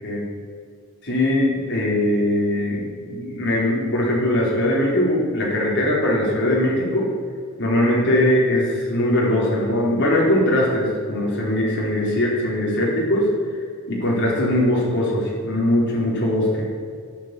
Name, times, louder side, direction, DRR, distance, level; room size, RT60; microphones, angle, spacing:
voice 1, 1.0-7.1 7.6-13.3 13.9-16.7, left 1 dB, 55° left, -4 dB, 4.4 m, -21 dB
11.5 x 9.9 x 8.6 m, 2.2 s
head